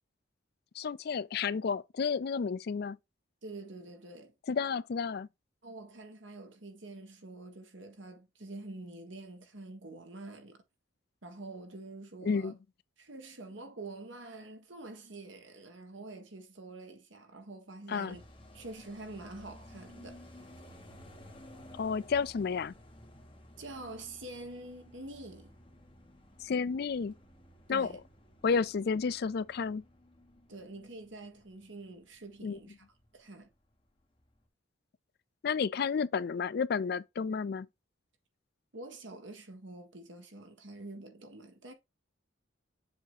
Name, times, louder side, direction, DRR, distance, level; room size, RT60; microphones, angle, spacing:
voice 1, 0.8-3.0 4.5-5.3 12.2-12.5 17.9-18.2 21.8-22.7 26.4-27.1 27.7-27.9 28.4-29.8 32.4-32.6 35.4-37.7, left 5 dB, 55° left, 0.4 m, -31 dB
voice 2, 3.4-4.3 5.6-10.6 11.2-12.5 13.0-18.2 18.5-20.3 23.6-25.5 27.7-28.0 30.5-32.8 33.1-33.5 38.7-41.7, right 2 dB, 70° right, 1.6 m, -46 dB
sound 1, 18.1-33.2 33.5-33.6 33.8-34.4, left 1 dB, 25° left, 1.5 m, -55 dB
7.2 x 2.9 x 4.8 m
head